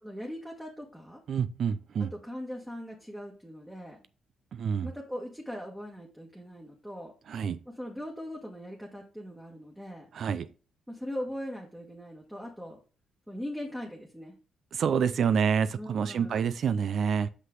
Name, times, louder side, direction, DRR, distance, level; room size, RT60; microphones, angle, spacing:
voice 1, 0.0-1.2 2.0-4.0 4.8-7.1 7.6-10.1 10.9-12.8 13.3-14.3 15.7-16.5, equal, 5° right, 1.5 m, -40 dB
voice 2, 1.3-2.1 4.5-4.9 7.3-7.6 10.1-10.5 14.7-17.3, right 7 dB, 65° right, 0.4 m, -27 dB
6.0 x 5.5 x 3.8 m
cardioid pair, 70°, 0 cm